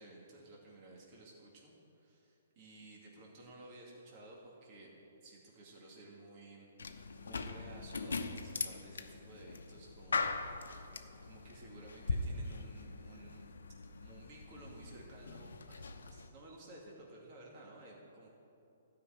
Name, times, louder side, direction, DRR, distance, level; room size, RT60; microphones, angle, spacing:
voice 1, 0.0-10.7 11.2-13.5 14.0-18.3, right 2 dB, 40° right, -3 dB, 2.3 m, -55 dB
sound 1, 6.8-16.3, left 3 dB, 85° left, 0.8 m, -41 dB
12.5 x 5.7 x 8.8 m, 2.8 s
hypercardioid pair, 140°, 0 cm